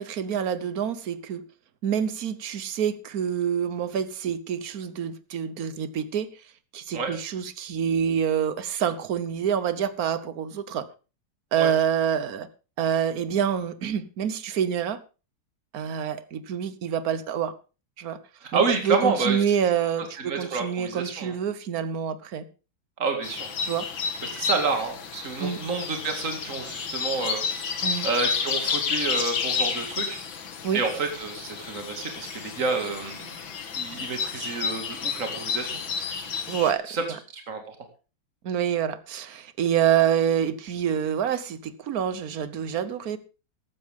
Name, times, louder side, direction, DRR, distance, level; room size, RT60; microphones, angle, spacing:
voice 1, 0.0-1.4 1.8-6.3 6.7-10.9 11.5-12.5 12.8-15.0 15.7-17.6 18.0-18.2 18.5-22.5 23.6-23.9 25.4-25.6 27.8-28.1 30.6-30.8 36.5-37.2 38.4-43.2, right 8 dB, 55° right, 1.2 m, -27 dB
voice 2, 18.4-19.4 20.3-21.3 23.0-23.5 24.2-27.4 28.0-30.2 30.7-33.3 33.7-35.7 36.9-37.0 37.3-37.8, right 4 dB, 40° right, 2.5 m, -29 dB
sound 1, 23.2-36.7, left 6 dB, 75° left, 2.3 m, -31 dB
15.0 x 12.5 x 3.6 m
omnidirectional pair, 2.2 m